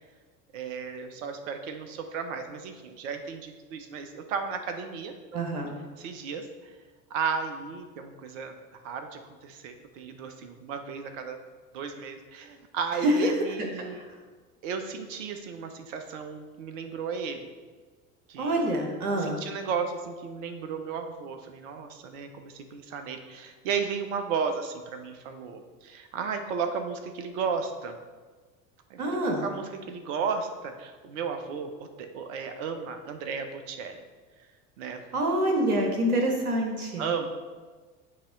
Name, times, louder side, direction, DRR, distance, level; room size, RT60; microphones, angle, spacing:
voice 1, 0.5-5.1 6.0-6.7 7.1-8.5 8.8-11.4 11.7-14.0 14.6-17.5 18.3-18.6 19.2-27.9 28.9-34.0 34.8-35.0 37.0-37.3, right 6 dB, 55° right, 7 dB, 0.9 m, -34 dB
voice 2, 5.3-5.7 13.0-13.3 13.8-14.1 18.4-19.4 29.0-29.5 35.1-37.1, right 1 dB, 75° right, 2 dB, 1.4 m, -26 dB
8.5 x 3.0 x 5.2 m, 1.4 s
figure-of-eight pair, 75°, 45 cm